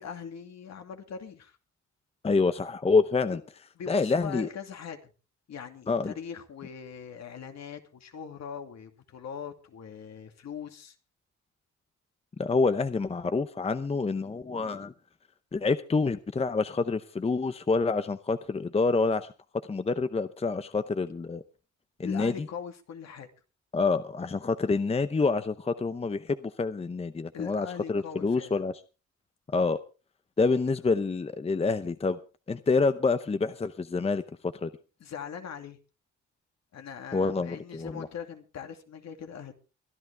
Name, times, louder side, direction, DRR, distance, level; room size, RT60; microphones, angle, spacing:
voice 1, 0.0-1.6 3.3-3.4 3.7-5.1 5.5-10.9 22.0-23.3 27.3-28.6 35.0-35.8 36.7-39.5, left 7 dB, 60° left, 6 dB, 2.5 m, -41 dB
voice 2, 2.2-3.4 3.9-4.5 5.9-6.1 12.4-14.9 15.5-19.3 19.7-21.4 22.0-22.5 23.7-28.7 29.5-29.8 30.4-32.2 32.5-34.2 34.6-34.7 37.1-38.1, left 4 dB, 20° left, 12 dB, 0.8 m, -27 dB
23.5 x 11.0 x 3.5 m, 0.33 s
cardioid pair, 90°, 30 cm